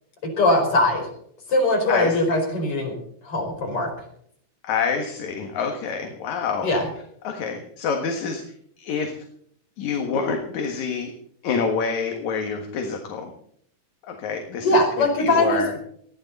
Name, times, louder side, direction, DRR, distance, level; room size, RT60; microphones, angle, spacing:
voice 1, 0.2-1.1 1.5-2.9 3.2-3.9 6.6-6.9 14.6-15.6, left 2 dB, 45° left, 1 dB, 6.0 m, -21 dB
voice 2, 4.6-6.7 7.2-8.4 8.8-9.1 9.8-11.1 11.4-13.3 14.0-15.7, left 5 dB, 70° left, 3 dB, 2.9 m, -27 dB
20.5 x 15.0 x 4.2 m, 0.65 s
omnidirectional pair, 3.5 m